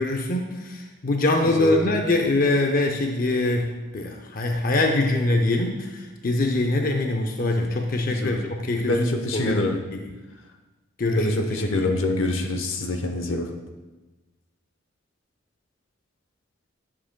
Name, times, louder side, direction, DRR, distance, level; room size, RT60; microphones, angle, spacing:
voice 1, 0.0-9.1 9.3-9.6 9.9-10.0 11.0-11.3 11.6-11.9, left 2 dB, 45° left, 3 dB, 0.6 m, -23 dB
voice 2, 1.4-1.8 8.1-9.8 11.1-13.5, left 1 dB, 80° left, 4 dB, 0.9 m, -26 dB
11.5 x 7.6 x 2.2 m, 1.2 s
head